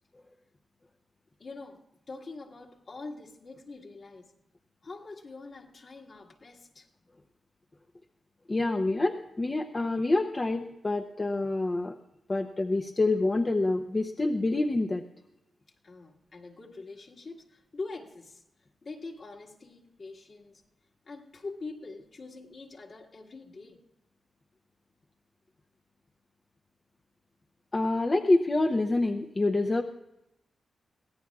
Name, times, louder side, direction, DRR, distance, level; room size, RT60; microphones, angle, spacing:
voice 1, 1.4-4.3 4.8-6.9 15.8-18.4 18.8-20.6 21.1-23.8, left 3 dB, 55° left, 2 dB, 1.8 m, -44 dB
voice 2, 8.5-11.9 12.3-15.0 27.7-29.8, left 2 dB, 30° left, 3 dB, 0.7 m, -27 dB
23.5 x 17.0 x 2.4 m, 0.88 s
cardioid pair, 75°, 0 cm